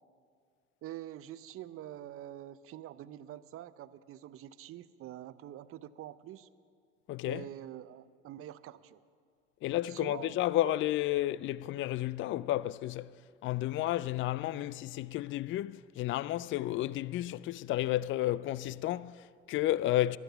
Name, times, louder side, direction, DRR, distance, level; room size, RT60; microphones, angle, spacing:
voice 1, 0.8-6.5 7.3-9.0 9.9-10.4 10.6-10.8, right 12 dB, 45° right, 0.6 m, -46 dB
voice 2, 7.1-7.4 9.6-13.1 13.4-20.2, left 14 dB, 40° left, 0.4 m, -32 dB
17.5 x 12.0 x 5.7 m
hypercardioid pair, 80°, 31 cm